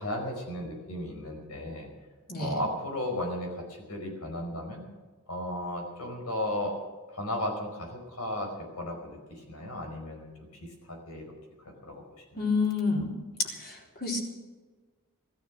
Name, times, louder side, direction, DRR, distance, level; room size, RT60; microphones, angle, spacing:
voice 1, 0.0-1.9 2.4-4.8 5.3-6.8 7.1-10.3 10.9-11.2 11.8-12.4, left 1 dB, 80° left, 2 dB, 5.0 m, -35 dB
voice 2, 12.3-13.1 13.5-14.2, left 4 dB, 45° left, -1 dB, 4.2 m, -29 dB
16.0 x 13.5 x 6.2 m, 1.4 s
head